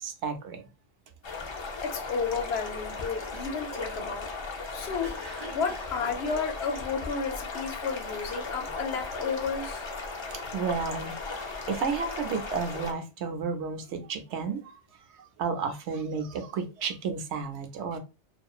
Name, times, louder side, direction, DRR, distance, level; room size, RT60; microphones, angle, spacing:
voice 1, 0.0-0.6 10.2-14.6 15.2-18.0, right 5 dB, 80° right, 0.9 m, -32 dB
sound 1, 1.2-12.9, left 3 dB, 45° left, 0.4 m, -37 dB
voice 2, 1.8-4.3 4.7-5.2 5.5-9.8, left 5 dB, 70° left, 0.8 m, -32 dB
Cough, 3.3-7.4 7.9-8.2 8.6-9.3 9.6-10.7 11.3-12.8, right 3 dB, 40° right, 0.8 m, -49 dB
2.7 x 2.4 x 2.3 m
omnidirectional pair, 1.2 m